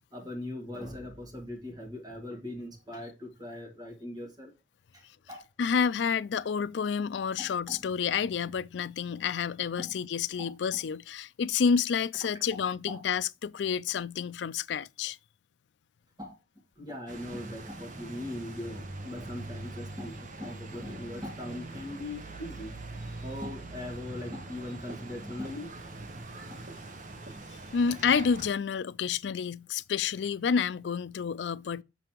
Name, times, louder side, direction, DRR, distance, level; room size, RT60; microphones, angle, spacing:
voice 1, 0.1-4.5 4.9-5.5 7.4-7.8 9.8-9.9 10.4-10.5 12.5-13.0 16.2-16.4 16.8-22.7 23.1-25.7 26.5-26.7, left 1 dB, 25° right, 2.1 m, -40 dB
voice 2, 5.6-15.2 27.7-31.8, left 6 dB, 80° left, 0.4 m, -29 dB
sound 1, 17.1-28.5, right 2 dB, 45° right, 0.9 m, -43 dB
6.7 x 5.4 x 2.9 m
head